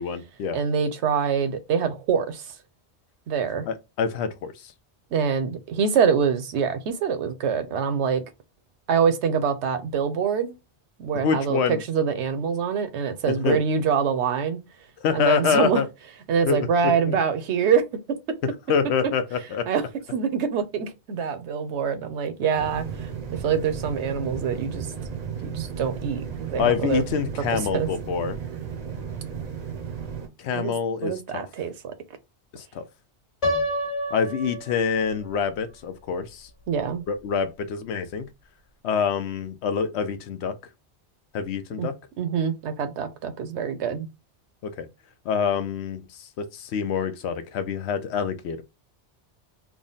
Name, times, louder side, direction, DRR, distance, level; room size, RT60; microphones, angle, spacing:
voice 1, 0.0-0.6 3.7-4.7 11.1-11.8 13.3-13.6 15.0-15.9 16.5-16.7 17.1-17.2 18.7-19.7 26.6-28.4 30.4-31.5 32.5-32.9 34.1-36.5 37.1-38.3 38.8-40.5 41.3-41.9 44.6-44.9 45.3-48.6, left 6 dB, 75° left, 0.8 m, -26 dB
voice 2, 0.5-2.5 3.3-3.7 5.1-8.2 8.9-10.6 11.0-14.6 15.1-15.8 16.3-17.8 19.7-19.8 20.1-24.9 25.4-27.0 27.5-27.9 30.5-30.7 31.0-31.9 36.7-37.0 41.8-41.9 42.2-44.1, right 6 dB, 75° right, 0.9 m, -25 dB
sound 1, 22.5-30.3, right 7 dB, 45° right, 0.6 m, -34 dB
Piano, 33.4-35.4, left 1 dB, 30° left, 1.3 m, -28 dB
3.6 x 2.1 x 3.8 m
omnidirectional pair, 1.2 m